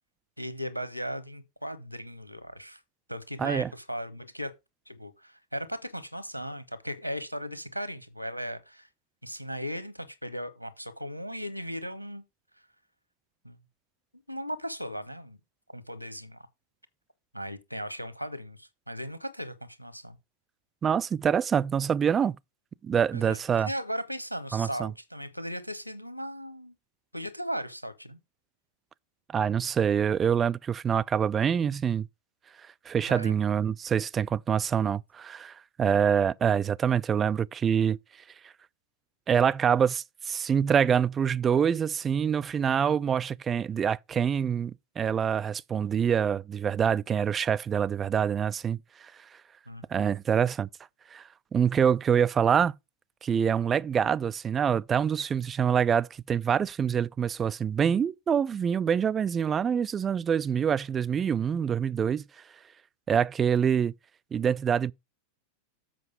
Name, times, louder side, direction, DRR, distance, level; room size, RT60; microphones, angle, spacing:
voice 1, 0.4-2.8 3.1-4.5 4.9-8.9 9.2-12.2 13.4-13.6 14.3-15.4 15.7-16.5 17.3-20.2 23.1-26.7 27.1-28.2 33.1-33.4 49.7-50.1, equal, 90° left, 1.1 m, -37 dB
voice 2, 3.4-3.7 20.8-22.4 22.8-23.7 24.5-24.9 29.3-32.1 32.9-38.0 39.3-49.1 49.9-50.7 51.1-51.2 51.5-52.8 53.2-62.2 63.1-63.9 64.3-64.9, right 7 dB, 20° right, 0.4 m, -25 dB
7.7 x 5.3 x 5.1 m
figure-of-eight pair, 90°, 0 cm